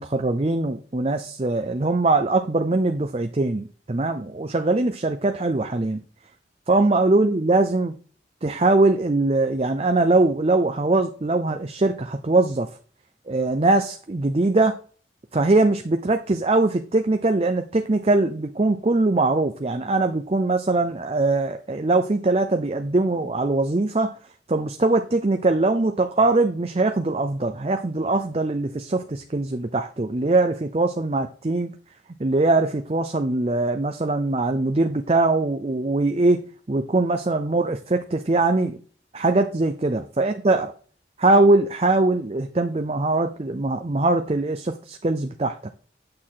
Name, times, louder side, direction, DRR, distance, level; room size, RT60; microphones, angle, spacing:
voice 1, 0.0-6.0 6.7-7.9 8.4-12.7 13.3-14.8 15.3-24.1 24.5-31.7 32.2-38.8 39.1-40.7 41.2-45.7, right 2 dB, 35° right, 6 dB, 0.5 m, -22 dB
8.6 x 6.4 x 3.8 m, 0.43 s
head